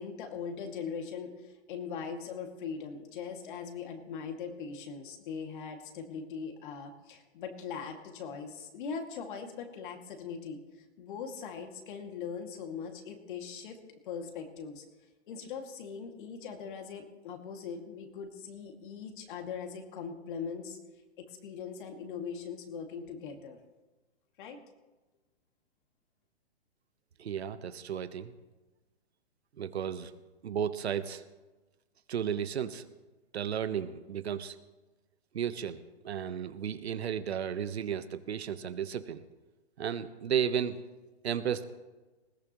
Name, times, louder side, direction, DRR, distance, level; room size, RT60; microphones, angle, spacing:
voice 1, 0.0-13.8 14.0-14.8 15.3-20.8 21.2-23.6 24.4-24.6, left 6 dB, 50° left, 4 dB, 2.4 m, -40 dB
voice 2, 27.2-28.3 29.6-30.1 30.4-31.2 32.1-32.9 33.3-34.6 35.3-39.2 39.8-40.8 41.2-41.6, right 8 dB, 70° right, 11 dB, 1.2 m, -33 dB
20.0 x 17.0 x 3.1 m, 1.2 s
hypercardioid pair, 140°, 33 cm